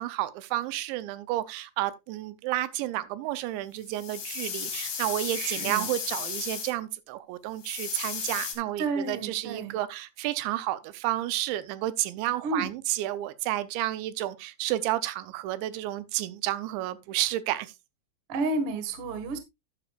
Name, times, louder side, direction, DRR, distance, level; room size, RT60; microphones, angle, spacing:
voice 1, 0.0-17.7, right 15 dB, 85° right, 3.0 m, -31 dB
sound 1, 3.8-6.7 7.6-8.5, left 6 dB, 50° left, 1.9 m, -34 dB
voice 2, 5.3-5.9 8.8-9.8 12.4-12.7 18.3-19.4, right 3 dB, 60° right, 1.5 m, -31 dB
12.0 x 9.5 x 2.4 m
omnidirectional pair, 5.2 m